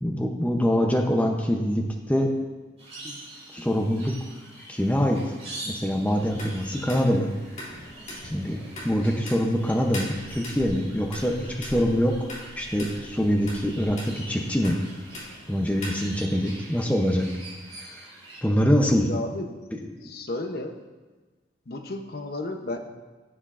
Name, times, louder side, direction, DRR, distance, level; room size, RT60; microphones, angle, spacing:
voice 1, 0.0-2.3 3.0-3.2 3.5-4.1 4.7-5.2 5.7-7.3 8.3-8.6 8.8-12.2 12.5-14.8 15.5-17.3 18.4-19.1, equal, 5° left, 1 dB, 0.6 m, -24 dB
sound 1, 2.8-18.4, right 1 dB, 35° right, 2.9 m, -45 dB
sound 2, 6.2-16.2, left 1 dB, 35° left, 2.4 m, -41 dB
voice 2, 19.1-19.6 20.0-20.8 21.7-22.8, left 2 dB, 55° left, 5 dB, 0.7 m, -33 dB
12.0 x 8.0 x 2.5 m, 1.3 s
head